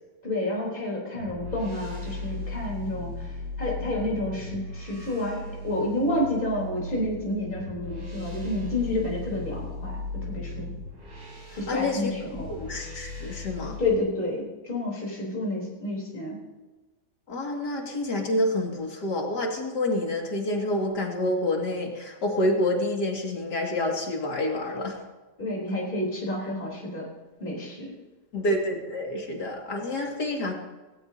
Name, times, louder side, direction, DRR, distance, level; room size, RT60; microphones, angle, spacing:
voice 1, 0.2-10.7 11.6-12.5 13.8-16.4 25.4-27.1 27.4-27.9, left 1 dB, 30° left, -3 dB, 3.9 m, -30 dB
sound 1, 1.1-14.0, left 2 dB, 70° right, 4.1 m, -37 dB
voice 2, 11.7-12.1 12.5-13.8 17.3-25.0 28.3-30.5, left 1 dB, 85° left, 0 dB, 2.8 m, -28 dB
18.0 x 18.0 x 2.8 m, 1.2 s
omnidirectional pair, 1.7 m